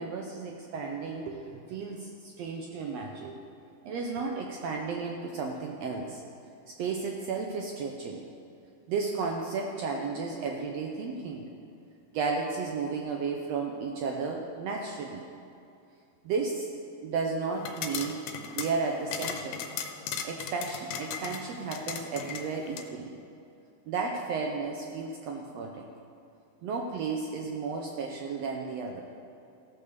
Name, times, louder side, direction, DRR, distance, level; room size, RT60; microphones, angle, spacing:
voice 1, 0.0-3.4 3.8-6.2 6.7-8.2 8.9-11.5 12.1-15.2 16.2-16.7 17.0-18.3 18.5-19.6 20.2-23.2 23.9-25.9 26.6-29.0, right 4 dB, 85° right, 1 dB, 1.4 m, -33 dB
sound 1, 17.6-22.9, left 7 dB, 85° left, 2.4 m, -38 dB
16.0 x 5.7 x 6.7 m, 2.7 s
omnidirectional pair, 3.9 m